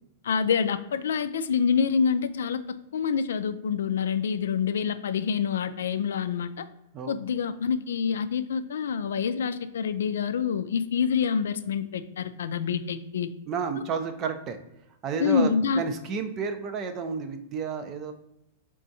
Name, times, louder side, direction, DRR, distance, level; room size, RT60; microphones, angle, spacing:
voice 1, 0.2-6.6 7.1-13.3 15.2-15.8, left 6 dB, 85° left, 11 dB, 0.3 m, -27 dB
voice 2, 13.5-14.6 15.0-15.5 15.8-18.1, right 5 dB, 30° right, 7 dB, 0.5 m, -31 dB
4.2 x 3.6 x 2.7 m, 0.85 s
hypercardioid pair, 135°, 0 cm